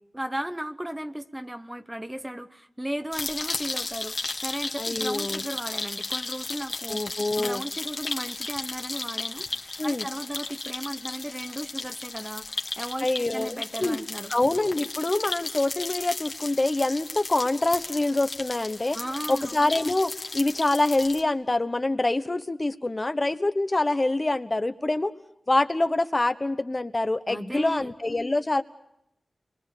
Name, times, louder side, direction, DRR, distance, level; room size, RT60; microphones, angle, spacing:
voice 1, 0.1-14.3 18.9-19.6 27.3-27.9, right 1 dB, 10° right, 9 dB, 1.0 m, -35 dB
sound 1, 3.1-21.2, left 3 dB, 50° left, 1.8 m, -35 dB
voice 2, 4.8-5.4 6.9-7.6 9.8-10.1 13.0-14.0 14.3-19.0 19.3-25.1 25.5-28.6, left 2 dB, 30° left, 10 dB, 1.1 m, -25 dB
30.0 x 23.0 x 6.7 m, 0.79 s
wide cardioid pair, 75°, 0 cm